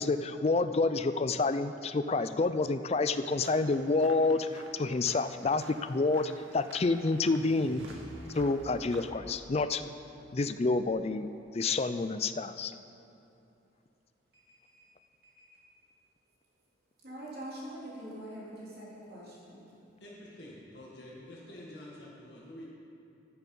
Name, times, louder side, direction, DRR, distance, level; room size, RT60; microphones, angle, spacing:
voice 1, 0.0-7.8 8.3-9.8 10.3-11.3 11.5-12.8, left 3 dB, 30° left, 11 dB, 0.4 m, -28 dB
sound 1, 3.2-9.1, right 2 dB, 75° right, 1.0 m, -52 dB
sound 2, 6.0-11.3, equal, 30° right, 1.5 m, -52 dB
voice 2, 17.0-19.7, right 1 dB, 50° right, -7 dB, 3.2 m, -44 dB
voice 3, 20.0-22.6, left 1 dB, 60° left, -5 dB, 1.7 m, -48 dB
11.5 x 9.3 x 5.4 m, 2.7 s
head